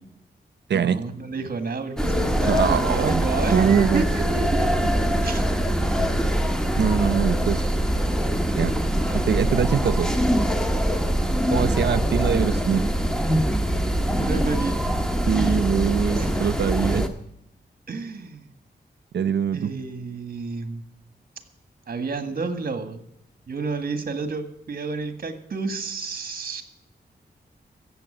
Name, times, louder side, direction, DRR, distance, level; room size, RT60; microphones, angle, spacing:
voice 1, 0.7-4.9 5.2-5.5 5.9-6.0 9.0-9.3 14.1-14.8 16.1-16.5 17.9-18.5 19.5-20.8 21.9-23.0 23.5-26.6, right 4 dB, 60° right, 8 dB, 1.8 m, -31 dB
sound 1, 2.0-17.1, equal, 5° left, 1.4 m, -23 dB
voice 2, 2.5-4.1 6.8-7.6 8.5-8.7 9.3-10.1 11.5-12.9 15.3-17.0 19.1-19.7, right 7 dB, 85° right, 16 dB, 0.7 m, -23 dB
15.0 x 7.5 x 8.9 m, 0.75 s
wide cardioid pair, 110°, 17 cm